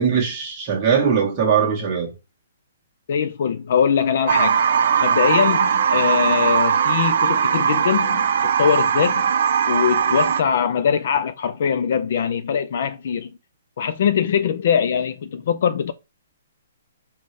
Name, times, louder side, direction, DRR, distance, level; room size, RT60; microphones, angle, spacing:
voice 1, 0.0-2.1, right 7 dB, 25° right, 1.0 m, -20 dB
voice 2, 3.1-4.6 5.0-9.3 9.7-13.3 13.8-15.9, left 7 dB, 45° left, 0.3 m, -22 dB
sound 1, 4.3-10.4, right 7 dB, 50° right, 0.5 m, -19 dB
5.3 x 2.7 x 3.2 m
hypercardioid pair, 175°, 0 cm